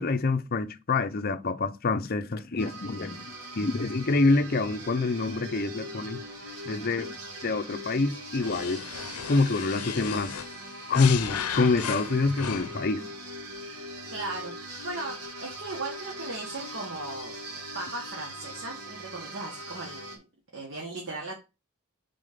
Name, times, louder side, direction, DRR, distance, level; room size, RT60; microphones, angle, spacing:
voice 1, 0.0-3.2 3.6-6.2 6.7-7.2 7.4-8.8 9.3-10.4 10.9-13.1, left 3 dB, 40° left, 0.6 m, -26 dB
sound 1, 2.6-20.2, right 1 dB, 80° right, 1.9 m, -41 dB
sound 2, 8.4-13.0, left 8 dB, 80° left, 0.6 m, -36 dB
voice 2, 14.1-14.5 14.8-17.3 17.7-20.3 20.5-21.4, right 2 dB, 55° right, 1.4 m, -37 dB
5.4 x 4.1 x 4.9 m
head